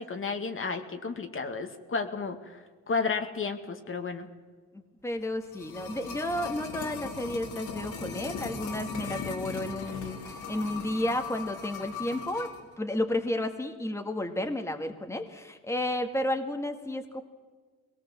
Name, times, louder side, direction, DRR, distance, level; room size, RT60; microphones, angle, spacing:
voice 1, 0.0-4.3, left 4 dB, 45° left, 6 dB, 2.1 m, -32 dB
voice 2, 4.7-17.2, left 1 dB, 10° left, 5 dB, 2.0 m, -32 dB
sound 1, 5.2-12.6 12.9-13.0, left 5 dB, 80° left, 3.9 m, -39 dB
21.5 x 18.5 x 7.6 m, 1.4 s
cardioid pair, 90°, 30 cm